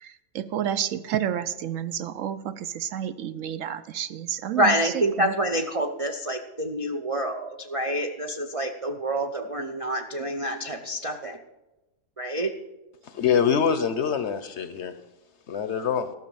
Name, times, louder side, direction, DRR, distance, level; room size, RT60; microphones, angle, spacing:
voice 1, 0.0-4.9 5.2-5.3, right 10 dB, 70° right, 13 dB, 0.9 m, -30 dB
voice 2, 4.5-11.4 12.2-12.5, right 1 dB, 40° right, 3 dB, 0.4 m, -27 dB
voice 3, 13.0-14.9 15.5-16.1, left 7 dB, 60° left, 11 dB, 0.9 m, -24 dB
13.5 x 6.2 x 6.9 m, 1.0 s
omnidirectional pair, 1.5 m